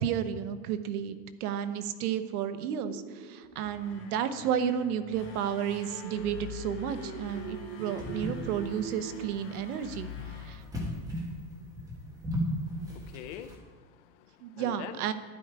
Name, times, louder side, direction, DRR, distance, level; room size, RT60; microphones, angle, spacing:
voice 1, 0.0-10.1 10.4-10.6 14.4-15.1, right 9 dB, 75° right, 10 dB, 1.1 m, -32 dB
sound 1, 2.8-4.1 5.9-9.3, right 5 dB, 35° right, 0.7 m, -43 dB
sound 2, 3.4-11.4, left 6 dB, 25° left, 4.1 m, -45 dB
sound 3, 7.3-13.6, equal, 10° right, 1.5 m, -37 dB
voice 2, 12.7-15.0, left 10 dB, 50° left, 9 dB, 0.9 m, -45 dB
12.0 x 10.5 x 4.8 m, 1.5 s
supercardioid pair, 170°, 45 cm